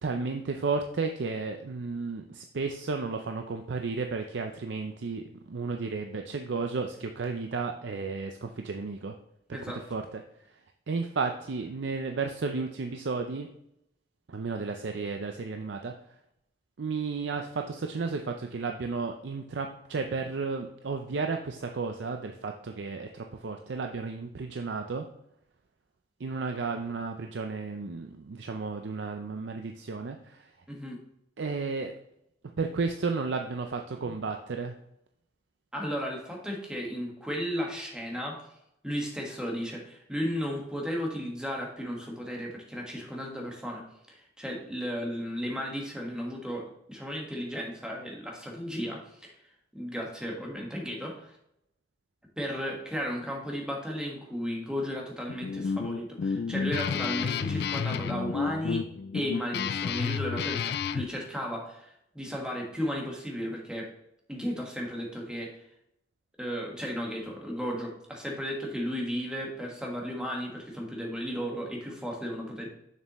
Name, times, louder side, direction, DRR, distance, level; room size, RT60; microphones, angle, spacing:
voice 1, 0.0-9.2 9.5-10.2 10.5-10.6 10.9-13.5 14.3-16.0 16.8-25.1 26.2-30.5 31.4-31.9 32.6-34.7, right 4 dB, 75° right, 5 dB, 0.5 m, -33 dB
voice 2, 9.5-9.8 30.7-31.0 34.0-34.1 35.7-38.4 38.8-43.8 44.1-49.3 49.7-51.3 52.4-58.8 59.1-63.9 64.3-65.5 66.4-72.7, equal, 5° right, -1 dB, 1.5 m, -34 dB
Guitar, 55.3-61.1, left 6 dB, 60° left, 0.3 m, -31 dB
6.9 x 6.7 x 3.0 m, 0.78 s
head